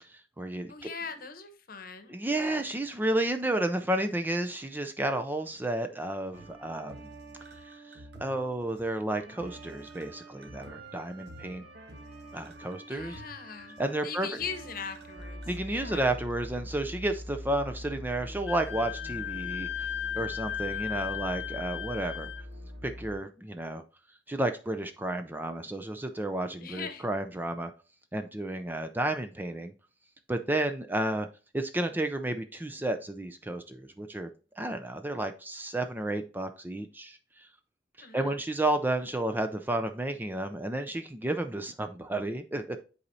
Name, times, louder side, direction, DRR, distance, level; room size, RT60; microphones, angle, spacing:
voice 1, 0.0-0.9 2.1-7.1 7.6-11.7 12.3-13.2 13.8-14.3 15.5-19.9 20.1-22.3 22.8-23.8 24.3-27.7 28.1-29.7 30.3-31.3 31.5-34.3 34.6-37.5 38.0-42.8, right 1 dB, 10° right, 0.4 m, -32 dB
voice 2, 0.7-2.2 12.9-13.8 14.0-15.4 15.7-16.0 26.6-27.1 38.0-38.4, left 6 dB, 55° left, 1.0 m, -40 dB
sound 1, 6.3-15.5, right 2 dB, 65° right, 1.3 m, -48 dB
sound 2, 15.1-23.2, left 1 dB, 85° right, 1.3 m, -42 dB
Wind instrument woodwind instrument, 18.5-22.4, left 11 dB, 85° left, 0.7 m, -36 dB
9.7 x 4.1 x 2.7 m
head